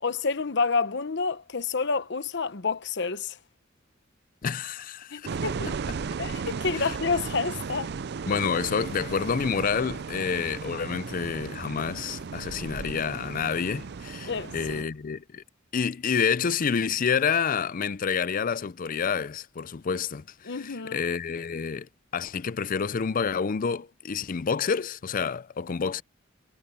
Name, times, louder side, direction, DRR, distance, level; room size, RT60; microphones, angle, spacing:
voice 1, 0.0-3.4 5.1-5.7 6.2-7.9 14.3-14.9 20.5-21.0, left 4 dB, 60° left, 1.0 m, -29 dB
voice 2, 4.4-5.4 5.7-5.8 6.7-6.9 8.3-15.4 15.7-21.9 22.1-26.0, left 6 dB, 45° left, 0.5 m, -28 dB
sound 1, 5.3-14.8, right 5 dB, 60° right, 0.5 m, -35 dB
head